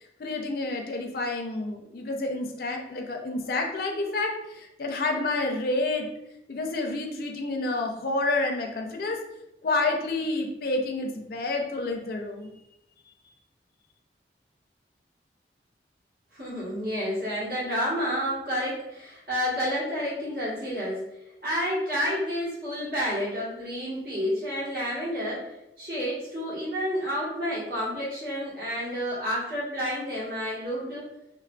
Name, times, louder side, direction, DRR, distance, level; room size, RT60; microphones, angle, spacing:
voice 1, 0.2-6.1 6.5-9.2 9.6-12.5, left 2 dB, 55° left, 2 dB, 0.4 m, -29 dB
voice 2, 16.3-21.0 21.4-25.5 25.8-31.1, equal, 55° right, -8 dB, 1.1 m, -30 dB
3.1 x 2.4 x 2.2 m, 0.88 s
head